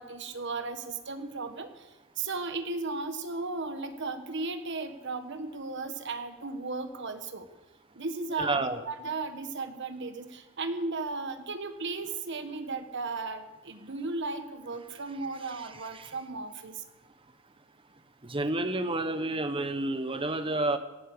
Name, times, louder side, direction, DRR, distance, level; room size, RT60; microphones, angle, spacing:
voice 1, 0.0-7.5 7.9-16.8, right 3 dB, 55° right, 9 dB, 1.4 m, -35 dB
voice 2, 8.4-8.8 15.4-16.1 18.2-20.8, right 2 dB, 25° right, 9 dB, 1.1 m, -30 dB
17.5 x 11.0 x 6.9 m, 1.1 s
head